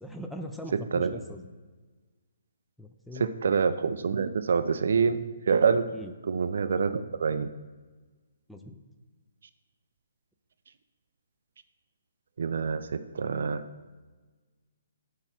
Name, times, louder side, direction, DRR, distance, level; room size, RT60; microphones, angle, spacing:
voice 1, 0.0-1.5 2.8-3.3 5.9-6.1 8.5-8.8, left 1 dB, ahead, 4 dB, 0.5 m, -40 dB
voice 2, 0.7-1.1 3.2-5.8 6.2-7.5 12.4-13.6, right 5 dB, 55° right, 11 dB, 0.4 m, -26 dB
6.4 x 4.7 x 5.9 m, 1.3 s
figure-of-eight pair, 130°, 0 cm